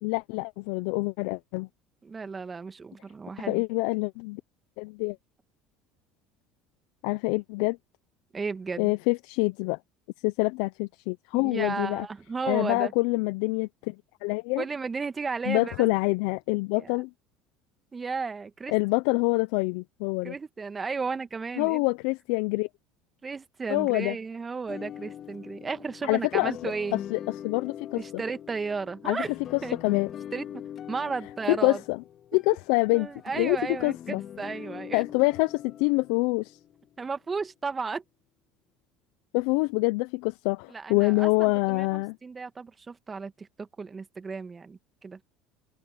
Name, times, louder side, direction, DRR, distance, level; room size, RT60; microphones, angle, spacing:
voice 1, 0.0-1.7 3.5-4.4 4.8-5.2 7.0-7.8 8.8-9.8 10.2-12.1 12.5-13.9 14.2-14.6 15.5-17.1 18.7-20.3 21.6-22.7 23.7-24.2 26.0-26.7 27.1-28.0 29.0-29.2 29.8-30.1 31.5-32.0 32.3-33.1 33.4-34.2 34.9-36.6 39.3-42.2, left 26 dB, 70° left, 0.9 m, -26 dB
voice 2, 2.0-3.6 8.3-8.9 11.3-12.9 14.6-15.9 16.8-17.0 17.9-18.7 20.2-21.8 23.2-27.0 28.0-29.3 29.6-30.0 30.3-30.5 30.9-31.8 32.9-33.9 34.4-35.0 37.0-38.0 40.7-45.2, right 4 dB, 25° right, 2.0 m, -34 dB
sound 1, 24.7-37.1, left 9 dB, 45° left, 3.7 m, -42 dB
hypercardioid pair, 75°, 0 cm